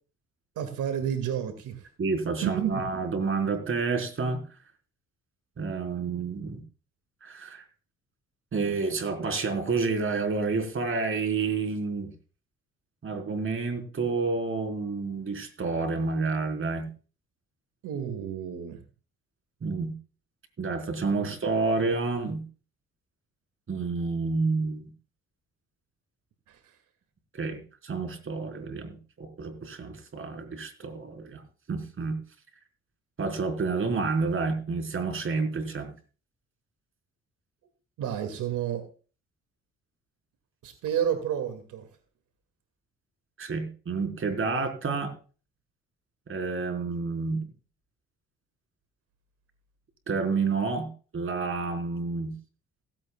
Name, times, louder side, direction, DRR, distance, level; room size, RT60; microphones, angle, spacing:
voice 1, 0.6-1.9 2.4-2.9 17.8-18.8 26.5-26.7 38.0-38.8 40.6-41.9, right 9 dB, 85° right, 8 dB, 2.2 m, -30 dB
voice 2, 2.0-4.4 5.6-6.6 7.2-7.6 8.5-12.1 13.0-16.9 19.6-19.9 20.6-22.4 23.7-24.9 27.3-31.4 31.7-32.2 33.2-35.9 43.4-45.1 46.3-47.4 50.1-52.3, right 4 dB, 45° right, 6 dB, 4.1 m, -29 dB
16.5 x 16.0 x 2.3 m, 0.37 s
cardioid pair, 90°, 30 cm